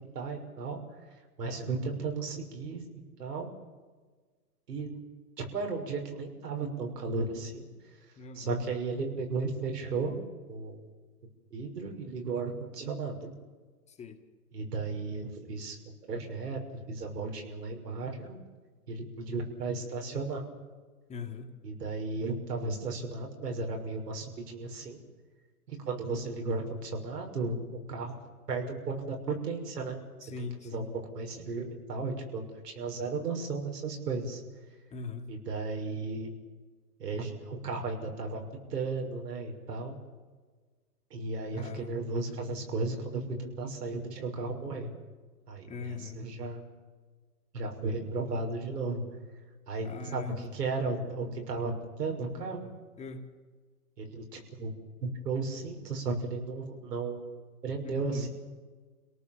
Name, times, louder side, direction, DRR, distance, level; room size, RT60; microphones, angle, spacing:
voice 1, 0.1-0.8 1.4-2.8 3.2-3.5 4.7-5.0 5.5-7.7 8.3-10.2 10.5-10.8 11.5-13.3 14.5-15.8 16.1-16.6 16.9-18.3 18.9-20.4 21.6-25.0 25.7-28.1 28.5-30.0 30.4-34.4 35.3-36.3 37.0-38.4 38.7-40.0 41.1-44.9 45.5-46.6 47.5-49.1 49.7-52.7 54.0-54.7 55.0-57.3 57.6-58.3, right 3 dB, 80° right, 2 dB, 6.4 m, -35 dB
voice 2, 8.2-8.6 13.9-14.2 21.1-21.5 30.2-30.9 34.9-35.3 41.5-42.1 45.7-46.2 49.8-50.5 53.0-53.3 57.8-58.3, left 5 dB, 15° left, 3 dB, 1.9 m, -41 dB
29.0 x 18.0 x 7.3 m, 1.4 s
hypercardioid pair, 140°, 47 cm